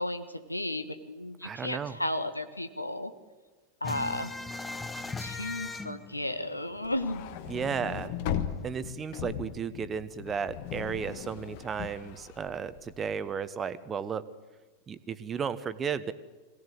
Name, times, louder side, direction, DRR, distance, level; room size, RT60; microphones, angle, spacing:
voice 1, 0.0-3.1 3.8-4.3 5.2-7.2, left 1 dB, 85° left, 10 dB, 1.4 m, -34 dB
voice 2, 1.4-2.0 7.5-8.2 8.6-14.2 14.9-16.1, right 6 dB, 20° right, 14 dB, 1.1 m, -34 dB
sound 1, 3.8-7.2 7.5-7.6 7.9-8.9, left 3 dB, 10° left, 1.1 m, -38 dB
sound 2, 6.8-13.2, left 9 dB, 50° left, 1.5 m, -38 dB
22.0 x 17.5 x 8.2 m, 1.3 s
figure-of-eight pair, 90°, 0 cm